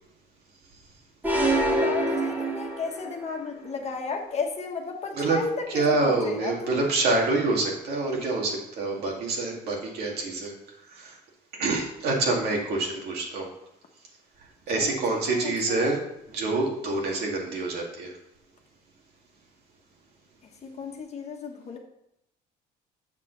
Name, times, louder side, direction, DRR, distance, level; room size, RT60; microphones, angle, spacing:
sound 1, 1.2-3.2, right 1 dB, 10° right, 1.7 m, -25 dB
voice 1, 1.3-6.8 14.7-15.0 15.4-15.9 20.6-21.8, left 4 dB, 40° left, 2 dB, 1.3 m, -34 dB
voice 2, 5.7-10.5 10.9-11.2 11.6-13.5 14.7-16.0 16.3-18.1, right 3 dB, 70° right, -1 dB, 2.1 m, -26 dB
7.4 x 6.3 x 3.9 m, 0.83 s
cardioid pair, 110°, 17 cm